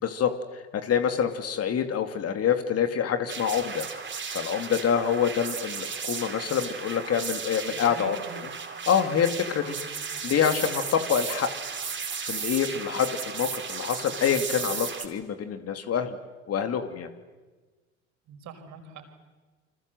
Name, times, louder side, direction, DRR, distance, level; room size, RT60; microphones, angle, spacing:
voice 1, 0.0-3.9 4.3-8.2 8.9-9.7 10.2-11.5 12.2-16.2 16.5-17.1, left 8 dB, 40° left, 7 dB, 2.8 m, -26 dB
sound 1, 3.3-15.1, right 6 dB, 30° right, 4.4 m, -35 dB
voice 2, 7.7-8.4 9.7-10.1 18.3-19.1, right 4 dB, 50° right, 6 dB, 5.2 m, -44 dB
28.5 x 25.5 x 8.0 m, 1.3 s
hypercardioid pair, 70°, 36 cm